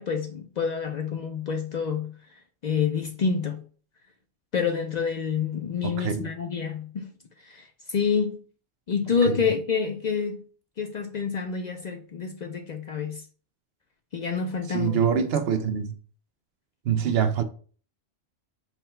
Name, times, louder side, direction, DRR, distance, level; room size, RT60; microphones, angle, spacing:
voice 1, 0.0-2.1 2.6-3.6 4.5-7.1 7.4-8.4 8.9-10.4 10.8-13.2 14.1-15.0, left 6 dB, 55° left, 0.5 m, -28 dB
voice 2, 5.8-6.3 9.3-9.4 14.7-15.9 16.8-17.4, right 7 dB, 75° right, 0.8 m, -25 dB
5.6 x 2.2 x 4.3 m
omnidirectional pair, 1.1 m